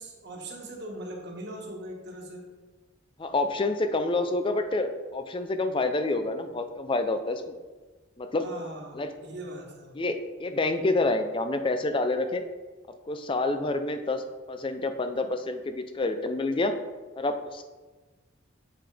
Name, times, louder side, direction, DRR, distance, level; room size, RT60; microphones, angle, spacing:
voice 1, 0.0-2.5 8.4-9.9, right 1 dB, 55° right, 0 dB, 1.3 m, -40 dB
voice 2, 3.2-7.5 8.2-8.5 8.9-9.1 10.0-12.4 13.1-16.7 17.2-17.7, left 2 dB, 25° left, 8 dB, 0.4 m, -28 dB
7.6 x 5.6 x 3.4 m, 1.3 s
head